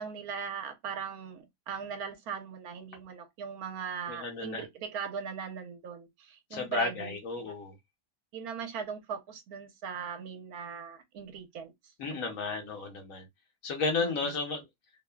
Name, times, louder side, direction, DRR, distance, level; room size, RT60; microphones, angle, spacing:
voice 1, 0.0-7.2 7.4-7.5 8.3-11.7 12.1-12.5 14.0-14.3, right 6 dB, 75° right, 1.1 m, -39 dB
voice 2, 4.1-4.6 6.5-7.7 12.0-13.2 13.6-14.6, left 4 dB, 65° left, 1.2 m, -33 dB
2.8 x 2.1 x 2.2 m
omnidirectional pair, 1.7 m